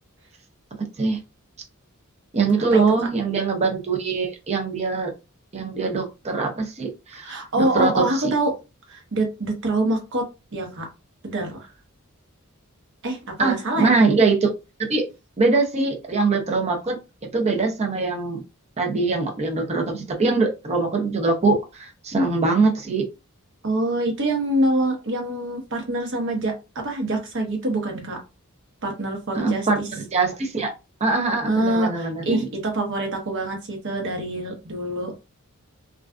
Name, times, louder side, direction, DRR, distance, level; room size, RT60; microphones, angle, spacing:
voice 1, 2.3-5.1 5.5-8.3 13.4-14.5 14.9-15.1 15.4-17.0 17.3-18.4 18.8-23.0 29.3-30.7 31.0-32.5, right 3 dB, 30° right, 2 dB, 0.6 m, -22 dB
voice 2, 7.2-8.6 8.9-10.2 10.5-10.9 11.2-11.7 13.0-14.0 23.6-28.2 28.8-29.7 31.4-35.1, right 1 dB, 60° right, 3 dB, 0.9 m, -25 dB
2.4 x 2.2 x 2.3 m, 0.27 s
head